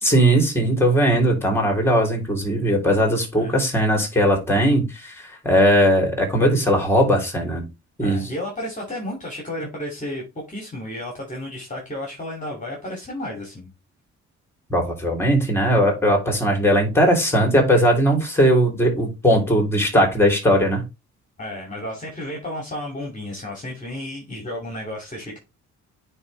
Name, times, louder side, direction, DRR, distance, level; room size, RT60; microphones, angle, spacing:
voice 1, 0.0-7.7 8.0-8.2 14.7-20.8, equal, 10° left, 2 dB, 3.2 m, -19 dB
voice 2, 8.0-13.7 21.4-25.4, left 1 dB, 25° left, -1 dB, 2.5 m, -32 dB
9.4 x 3.5 x 3.2 m, 0.26 s
cardioid pair, 90°, 30 cm